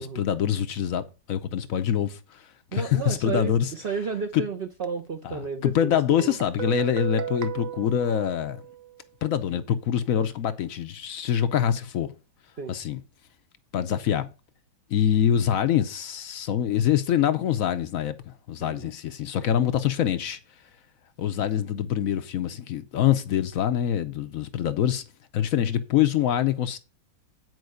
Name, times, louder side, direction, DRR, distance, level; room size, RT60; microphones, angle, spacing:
voice 1, 0.0-3.7 4.3-4.4 5.2-8.6 9.2-12.1 12.7-13.0 13.7-14.3 14.9-20.4 21.2-25.0 25.3-26.8, left 10 dB, 65° left, 0.8 m, -25 dB
voice 2, 2.7-6.3 12.6-12.7 18.6-18.8, right 5 dB, 70° right, 0.5 m, -32 dB
Guitar, 6.2-9.0, right 11 dB, 50° right, 1.2 m, -35 dB
9.4 x 4.6 x 6.3 m
omnidirectional pair, 2.1 m